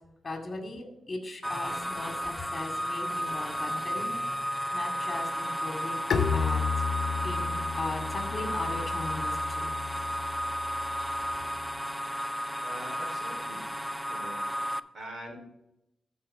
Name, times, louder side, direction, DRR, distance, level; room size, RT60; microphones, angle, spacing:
voice 1, 0.2-4.1 4.5-6.6 7.2-7.5 7.7-9.7, left 2 dB, 35° left, 3 dB, 2.2 m, -38 dB
sound 1, 1.4-14.8, equal, 5° right, 0.3 m, -33 dB
Bowed string instrument, 6.1-11.7, left 6 dB, 70° left, 0.9 m, -33 dB
voice 2, 12.6-13.7 14.1-14.5 14.9-15.4, right 1 dB, 55° right, 2 dB, 2.9 m, -43 dB
12.5 x 4.7 x 4.7 m, 0.86 s
cardioid pair, 85°, 0 cm